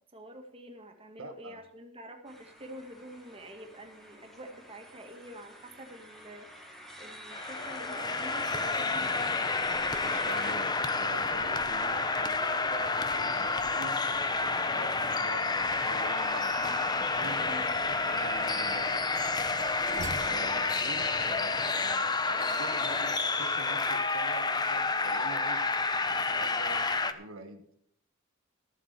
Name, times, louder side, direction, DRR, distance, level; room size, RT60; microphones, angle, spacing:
voice 1, 0.0-9.6 16.5-16.8 17.5-17.7 26.6-26.8, equal, 30° right, 3 dB, 2.0 m, -47 dB
voice 2, 1.2-1.6 10.0-14.0 14.4-16.6 17.1-19.0 19.9-25.6 26.2-27.6, right 3 dB, 85° right, 5 dB, 1.5 m, -45 dB
sound 1, 2.3-10.5, equal, ahead, 2.1 m, -47 dB
sound 2, 7.3-27.1, left 3 dB, 20° left, 0.8 m, -29 dB
sound 3, 15.6-21.4, right 4 dB, 65° right, 1.3 m, -45 dB
14.0 x 7.7 x 6.7 m, 0.69 s
head